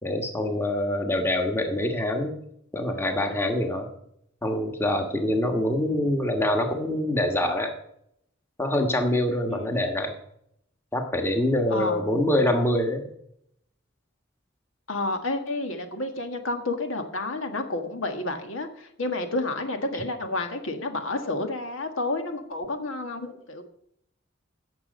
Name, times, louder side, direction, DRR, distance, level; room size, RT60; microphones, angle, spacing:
voice 1, 0.0-2.4 2.7-3.9 4.4-7.7 8.6-10.2 10.9-13.1, left 1 dB, 10° left, 4 dB, 1.4 m, -25 dB
voice 2, 11.7-12.1 14.9-23.6, left 2 dB, 75° left, 5 dB, 1.6 m, -30 dB
16.0 x 7.1 x 5.3 m, 0.74 s
head